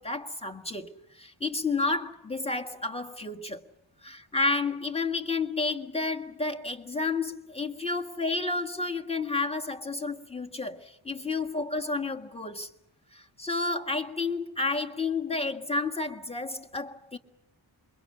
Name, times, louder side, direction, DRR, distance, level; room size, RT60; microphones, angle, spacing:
voice 1, 0.0-3.6 4.0-12.7 13.1-17.2, left 3 dB, 10° left, 1.8 m, -31 dB
27.5 x 23.0 x 8.6 m
wide cardioid pair, 90°, 47 cm